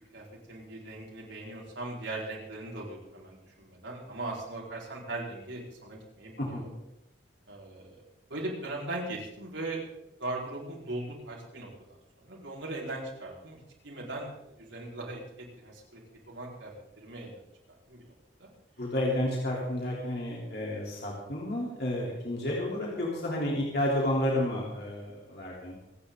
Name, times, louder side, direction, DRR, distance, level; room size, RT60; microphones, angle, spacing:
voice 1, 0.1-6.7 7.5-8.0 8.3-9.8 10.2-13.6 13.8-16.0 16.3-17.4 17.9-18.5, right 2 dB, 85° right, -3 dB, 5.0 m, -39 dB
voice 2, 6.4-6.7 18.8-25.8, left 1 dB, 55° left, -4 dB, 3.6 m, -31 dB
26.5 x 10.0 x 3.9 m, 0.88 s
head